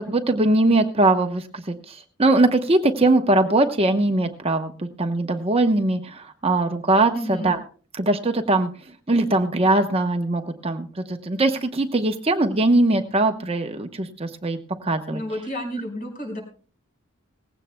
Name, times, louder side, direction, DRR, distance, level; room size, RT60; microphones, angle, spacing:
voice 1, 0.0-7.6 7.9-8.7 9.1-15.2, right 2 dB, 30° right, 6 dB, 0.9 m, -21 dB
voice 2, 7.1-7.5 15.1-16.4, equal, 40° left, 1 dB, 4.7 m, -31 dB
19.0 x 16.0 x 2.2 m, 0.39 s
head